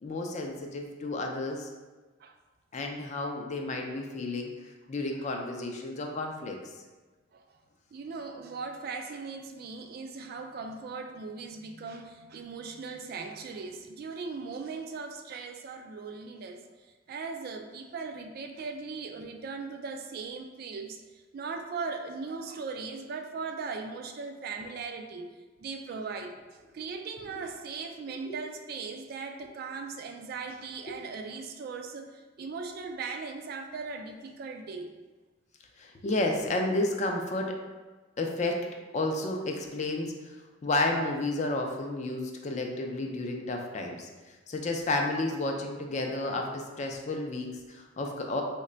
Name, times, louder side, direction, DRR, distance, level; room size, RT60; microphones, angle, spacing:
voice 1, 0.0-1.7 2.7-4.5 4.9-6.6 28.3-28.4 30.9-31.0 35.8-37.5 38.2-38.7 38.9-40.3 40.6-48.4, left 2 dB, 40° left, 2 dB, 0.4 m, -31 dB
voice 2, 7.9-16.6 17.1-21.0 21.3-25.3 25.6-26.4 26.7-34.9, right 4 dB, 55° right, 4 dB, 0.3 m, -39 dB
3.1 x 2.2 x 3.8 m, 1.3 s
head